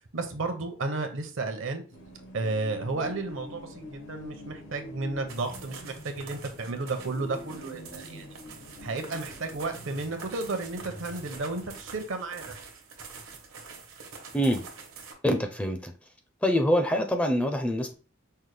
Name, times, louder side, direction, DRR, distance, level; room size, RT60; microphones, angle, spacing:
voice 1, 0.1-1.8 2.3-8.3 8.8-12.5, right 3 dB, 70° right, 0.7 m, -33 dB
sound 1, 1.9-11.8, left 1 dB, 75° left, 1.1 m, -46 dB
sound 2, 5.3-15.1, right 5 dB, 85° right, 1.1 m, -46 dB
voice 2, 14.3-14.6 15.2-15.9 16.4-17.9, equal, 5° left, 0.4 m, -25 dB
5.5 x 2.1 x 3.2 m
head